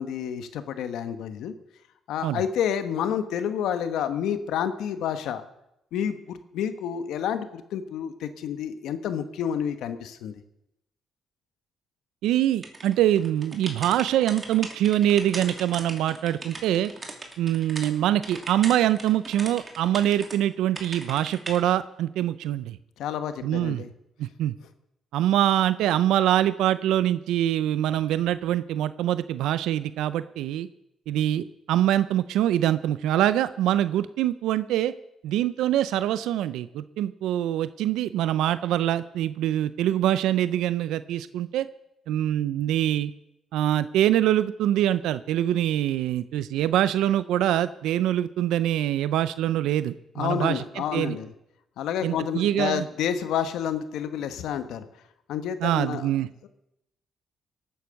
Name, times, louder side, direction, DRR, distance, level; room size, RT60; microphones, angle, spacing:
voice 1, 0.0-1.5 2.1-5.4 5.9-10.3 23.0-23.9 50.1-51.3 51.8-54.8 55.3-56.1, left 8 dB, 85° left, 10 dB, 1.1 m, -29 dB
voice 2, 12.2-16.9 17.4-22.8 23.4-23.8 24.2-24.5 25.1-30.7 31.1-34.9 35.2-41.7 42.1-43.1 43.5-50.6 50.9-51.2 52.0-52.8 55.6-56.3, right 12 dB, 90° right, 15 dB, 0.5 m, -24 dB
sound 1, 12.6-17.9 18.2-20.4 20.7-21.6, right 2 dB, 25° right, 2.6 m, -38 dB
18.0 x 9.2 x 6.4 m, 0.84 s
cardioid pair, 90°, 0 cm